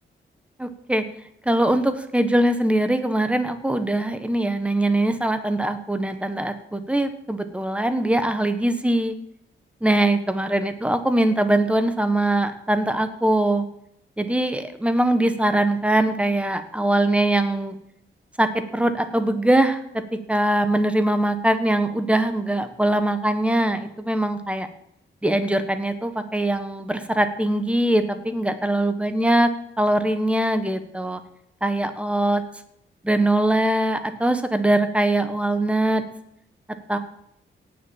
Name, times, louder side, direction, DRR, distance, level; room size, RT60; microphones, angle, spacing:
voice 1, 0.6-1.0 1.4-9.1 9.8-13.6 14.2-17.8 18.4-19.8 20.3-24.7 25.2-29.5 29.8-31.2 31.6-32.4 33.0-36.0 36.9-37.0, right 1 dB, 5° right, 9 dB, 1.4 m, -22 dB
17.5 x 7.0 x 7.4 m, 0.76 s
wide cardioid pair, 125°, 20 cm